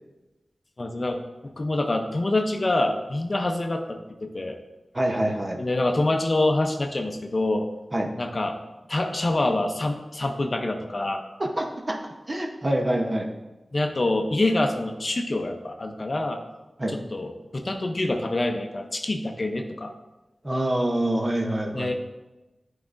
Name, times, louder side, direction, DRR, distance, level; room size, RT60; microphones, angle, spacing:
voice 1, 0.8-4.6 5.6-7.7 8.2-8.6 8.9-11.2 13.7-16.4 16.9-19.9 21.7-21.9, left 2 dB, 45° left, 4 dB, 0.6 m, -26 dB
voice 2, 4.9-5.6 7.9-8.1 11.4-12.0 12.3-13.3 16.8-17.0 20.4-21.9, right 1 dB, 30° right, 2 dB, 0.8 m, -25 dB
9.3 x 4.7 x 2.5 m, 1.1 s
wide cardioid pair, 85°, 0 cm